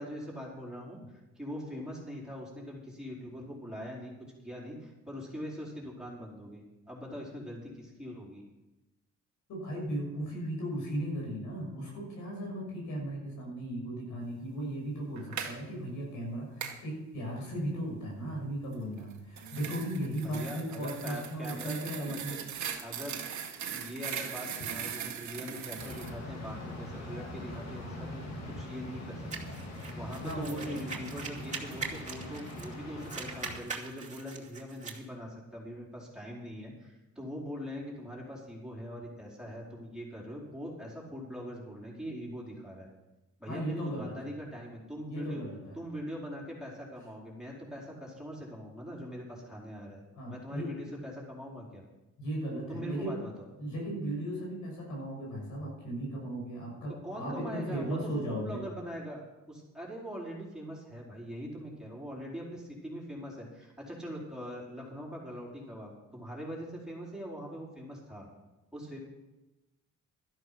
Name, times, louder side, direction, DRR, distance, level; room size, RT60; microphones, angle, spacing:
voice 1, 0.0-4.1 4.4-8.4 20.2-22.4 22.8-23.2 23.7-28.2 28.6-42.9 43.4-45.4 45.7-50.0 50.3-51.8 52.7-53.3 57.0-59.2 59.5-68.3 68.7-69.0, equal, ahead, -4 dB, 4.7 m, -42 dB
voice 2, 9.5-22.4 30.2-30.8 43.5-44.1 45.1-45.8 50.1-50.7 52.2-53.2 53.6-58.6, right 1 dB, 80° left, -1 dB, 6.3 m, -36 dB
sound 1, 15.2-15.6 16.6-16.8 19.0-26.1, right 8 dB, 65° right, 1.7 m, -39 dB
sound 2, 25.8-33.6, left 1 dB, 60° left, 3.3 m, -42 dB
sound 3, 29.3-32.7 33.0-35.0, right 4 dB, 25° right, 2.5 m, -41 dB
13.0 x 11.5 x 6.0 m, 1.0 s
cardioid pair, 90°, 30 cm